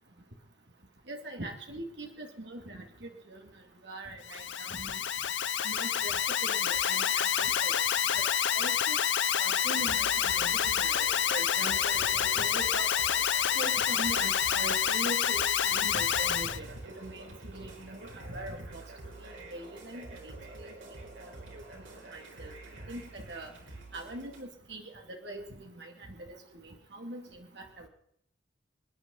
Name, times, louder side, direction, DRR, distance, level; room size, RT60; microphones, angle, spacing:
voice 1, 1.1-3.4 3.8-5.0 5.6-7.8 8.5-9.0 9.4-12.9 13.5-20.7 21.2-21.3 21.9-22.5 22.9-23.5 23.9-26.3 26.6-27.9, right 1 dB, 65° right, 2 dB, 2.6 m, -42 dB
Alarm, 4.2-16.6, left 9 dB, 75° left, 0.7 m, -28 dB
sound 1, 9.7-24.4, right 2 dB, 90° right, 4.6 m, -48 dB
27.5 x 9.7 x 4.0 m, 0.70 s
head